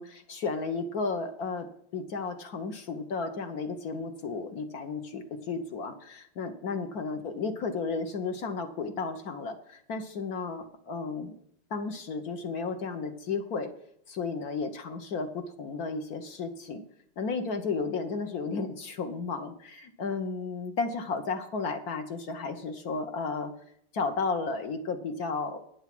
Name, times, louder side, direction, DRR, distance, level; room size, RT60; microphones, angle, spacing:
voice 1, 0.0-1.7 1.9-11.4 11.7-13.7 14.1-16.8 17.2-23.5 23.9-25.6, left 4 dB, 55° left, 6 dB, 1.3 m, -33 dB
9.6 x 7.2 x 6.0 m, 0.69 s
omnidirectional pair, 2.2 m